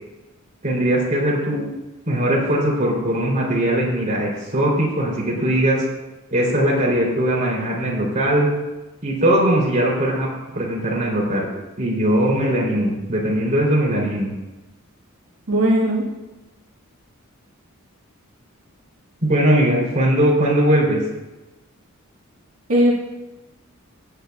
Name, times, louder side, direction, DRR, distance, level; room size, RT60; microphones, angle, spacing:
voice 1, 0.6-1.7 2.0-5.8 6.3-8.5 9.0-10.3 10.5-11.5 11.8-14.3 19.2-21.0, right 1 dB, 35° right, -3 dB, 3.4 m, -20 dB
voice 2, 15.5-16.1 22.7-22.9, right 1 dB, 85° right, -4 dB, 1.9 m, -17 dB
17.5 x 9.1 x 2.4 m, 1.1 s
head